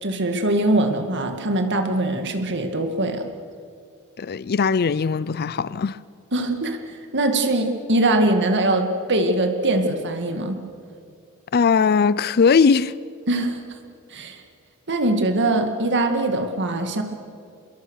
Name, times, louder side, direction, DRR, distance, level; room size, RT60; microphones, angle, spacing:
voice 1, 0.0-3.2 6.3-10.6 13.3-13.6 14.1-14.4 14.9-17.0, right 2 dB, 55° right, 2.2 m, -22 dB
voice 2, 4.2-6.0 11.5-12.9, left 5 dB, 45° left, 0.5 m, -19 dB
26.0 x 22.0 x 6.5 m
head